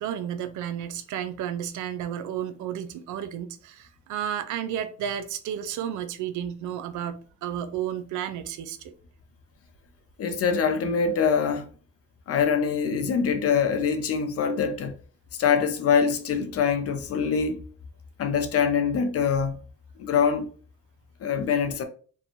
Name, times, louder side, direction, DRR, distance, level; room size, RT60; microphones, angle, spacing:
voice 1, 0.0-8.9, right 10 dB, 75° right, 0.4 m, -32 dB
voice 2, 10.2-11.7 12.3-14.9 15.4-17.6 18.2-19.6 20.0-20.5 21.2-21.8, left 6 dB, 50° left, 0.5 m, -24 dB
2.6 x 2.2 x 2.9 m
cardioid pair, 90°, 30 cm